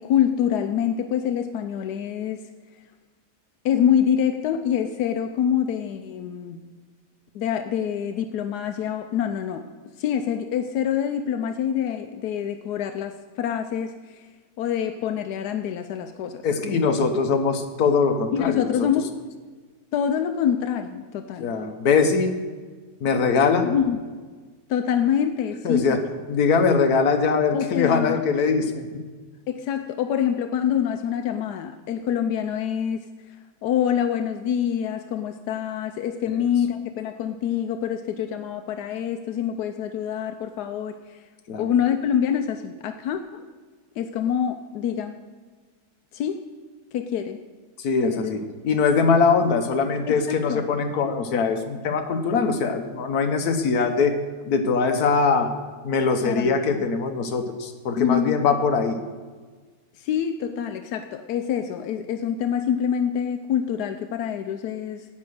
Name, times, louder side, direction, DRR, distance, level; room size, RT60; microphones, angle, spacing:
voice 1, 0.0-2.4 3.6-6.6 7.3-9.6 10.0-14.2 14.6-16.4 18.3-19.1 19.9-21.5 23.6-24.0 24.7-26.0 27.5-28.2 29.5-33.1 33.6-41.2 41.6-43.4 44.0-45.2 46.1-46.5 46.9-47.4 48.0-48.3 50.1-50.7 56.2-56.6 58.0-58.4 60.0-65.0, left 9 dB, 90° left, 7 dB, 1.2 m, -26 dB
voice 2, 16.4-18.6 21.4-22.4 23.0-23.7 25.6-26.0 26.3-29.0 41.5-41.6 47.8-54.1 54.4-55.5 55.8-59.0, left 5 dB, 70° left, 6 dB, 1.5 m, -22 dB
10.0 x 8.6 x 6.4 m, 1.4 s
omnidirectional pair, 1.7 m